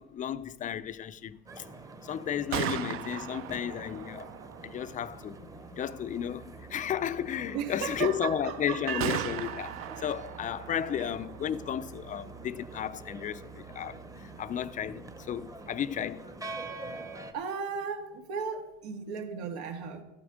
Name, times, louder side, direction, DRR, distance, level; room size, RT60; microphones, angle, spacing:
voice 1, 0.0-1.6 2.0-4.3 4.6-16.3, left 9 dB, 25° left, 0.5 m, -34 dB
sound 1, 1.5-17.3, right 2 dB, 10° right, 0.9 m, -46 dB
Gunshot gunfire, 2.3-16.1, right 11 dB, 45° right, 0.6 m, -41 dB
voice 2, 7.5-9.2 10.7-11.1 17.3-20.0, right 6 dB, 80° right, 1.9 m, -36 dB
sound 2, 8.9-11.0, right 8 dB, 60° right, 1.3 m, -41 dB
13.0 x 8.9 x 5.0 m
supercardioid pair, 120°, 32 cm